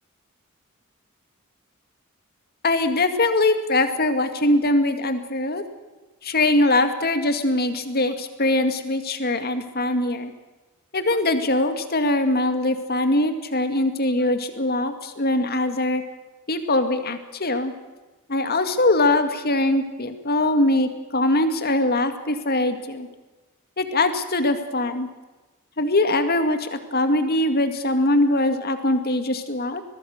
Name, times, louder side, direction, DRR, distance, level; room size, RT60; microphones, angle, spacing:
voice 1, 2.6-5.6 6.2-10.3 10.9-16.0 16.5-17.7 18.3-23.1 23.8-25.1 25.8-29.8, left 2 dB, 45° left, 8 dB, 2.1 m, -22 dB
23.0 x 20.0 x 6.6 m, 1.2 s
head